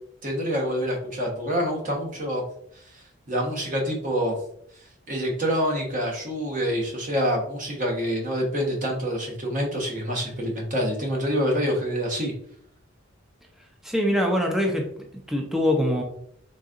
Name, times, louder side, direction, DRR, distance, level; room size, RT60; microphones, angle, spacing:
voice 1, 0.2-2.4 3.3-4.4 5.1-12.3, equal, 40° right, 0 dB, 1.1 m, -26 dB
voice 2, 13.8-14.9 15.3-16.0, left 1 dB, ahead, 1 dB, 0.5 m, -23 dB
4.0 x 3.8 x 2.4 m, 0.68 s
head